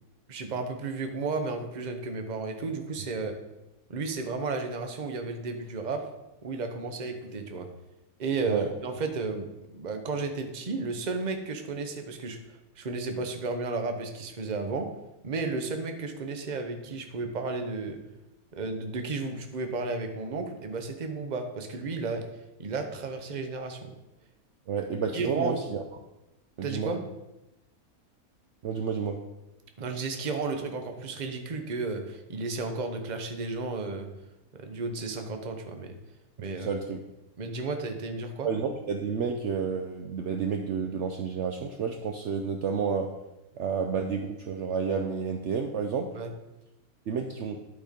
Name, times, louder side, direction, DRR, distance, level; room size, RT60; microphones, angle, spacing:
voice 1, 0.3-3.4 3.9-6.1 6.4-7.7 8.2-12.4 12.8-14.9 15.2-18.0 18.5-22.2 22.6-23.9 25.1-25.6 26.6-27.0 29.8-34.1 34.5-35.9 36.4-36.7 37.4-38.5 46.1-46.3, right 3 dB, 35° right, 6 dB, 0.9 m, -33 dB
voice 2, 24.7-25.8 26.6-26.9 28.6-29.2 36.5-37.0 38.4-43.1 43.6-46.1 47.1-47.6, right 6 dB, 60° right, 4 dB, 0.9 m, -30 dB
11.0 x 4.4 x 5.2 m, 0.96 s
omnidirectional pair, 1.6 m